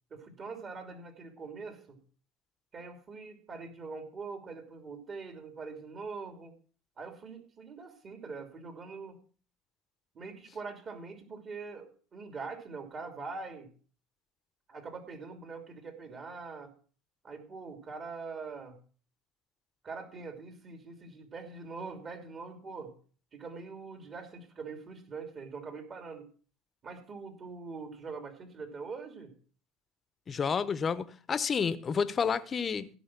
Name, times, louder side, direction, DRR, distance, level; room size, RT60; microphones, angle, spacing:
voice 1, 0.1-2.0 2.7-6.5 7.0-9.2 10.1-13.7 14.7-16.7 17.2-18.8 19.8-22.9 23.3-26.3 26.8-29.3, right 4 dB, 40° right, 2.9 m, -43 dB
voice 2, 30.3-32.9, left 6 dB, 35° left, 0.9 m, -30 dB
16.0 x 6.2 x 6.1 m
supercardioid pair, 90°, 0 cm